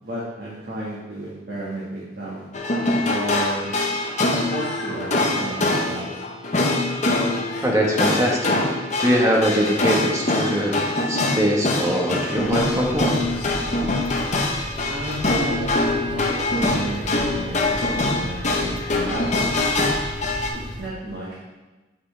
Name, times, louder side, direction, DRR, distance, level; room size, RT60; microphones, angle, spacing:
voice 1, 0.0-2.5 3.0-3.7 4.3-6.1 14.9-19.2 20.8-21.4, right 1 dB, 60° right, -8 dB, 1.6 m, -33 dB
sound 1, 2.5-20.5, left 2 dB, 40° left, 0.9 m, -24 dB
voice 2, 7.6-8.6 9.0-10.8 11.1-13.2, equal, 20° right, -1 dB, 1.2 m, -22 dB
sound 2, 12.4-20.9, equal, 85° left, 1.3 m, -35 dB
8.2 x 5.7 x 3.3 m, 1.2 s
head